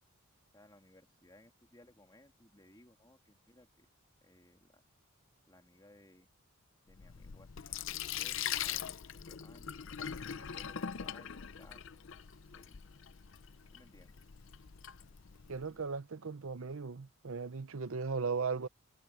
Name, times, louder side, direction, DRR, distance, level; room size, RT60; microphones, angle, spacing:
voice 1, 0.5-3.9 4.2-4.8 5.5-6.3 6.9-7.7 8.1-9.8 10.1-11.8 12.5-12.8 13.7-14.2, left 1 dB, 20° left, 2.7 m, -61 dB
Sink (filling or washing), 6.9-15.7, left 9 dB, 60° left, 0.6 m, -42 dB
voice 2, 15.5-18.7, right 5 dB, 70° right, 0.7 m, -37 dB
head